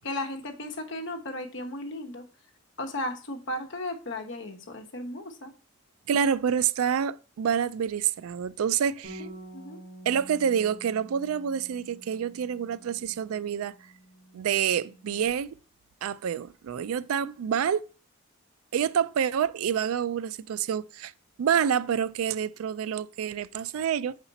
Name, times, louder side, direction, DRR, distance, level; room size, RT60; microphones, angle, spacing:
voice 1, 0.0-2.2 2.8-5.5 9.2-9.8, left 1 dB, 60° left, 1.0 m, -35 dB
voice 2, 6.1-9.3 10.1-13.7 14.3-15.6 16.0-17.9 18.7-21.1 21.4-24.2, right 8 dB, 85° right, 0.3 m, -27 dB
Bass guitar, 9.0-15.3, right 1 dB, 40° right, 3.0 m, -48 dB
5.7 x 4.3 x 4.0 m
head